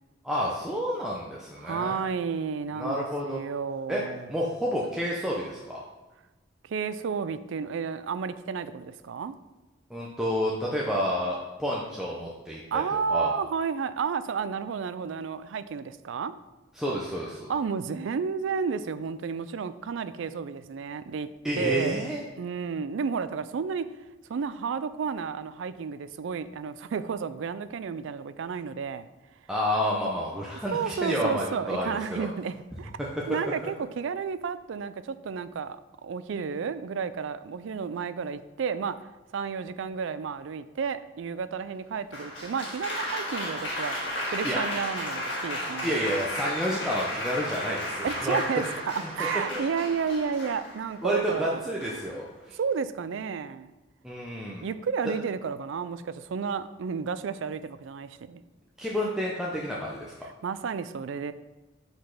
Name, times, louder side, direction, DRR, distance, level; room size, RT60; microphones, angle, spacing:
voice 1, 0.2-1.9 2.8-3.4 3.9-4.0 4.3-5.8 9.9-12.8 13.1-13.3 16.8-17.5 21.4-22.2 29.5-32.3 33.0-33.1 44.4-44.6 45.8-48.4 49.5-49.6 51.0-52.6 54.0-54.6 58.8-60.2, equal, 5° right, -5 dB, 0.6 m, -30 dB
voice 2, 1.6-4.3 6.6-9.4 12.7-16.3 17.5-21.3 21.5-22.1 22.4-23.9 24.3-29.1 30.7-33.0 33.3-39.0 39.3-44.0 44.3-45.9 48.0-51.6 52.5-53.7 54.6-58.4 60.4-61.3, right 6 dB, 70° right, 13 dB, 0.4 m, -32 dB
Applause, 42.1-51.0 51.8-52.2, left 1 dB, 65° left, 1.6 m, -34 dB
5.2 x 4.1 x 5.9 m, 1.1 s
head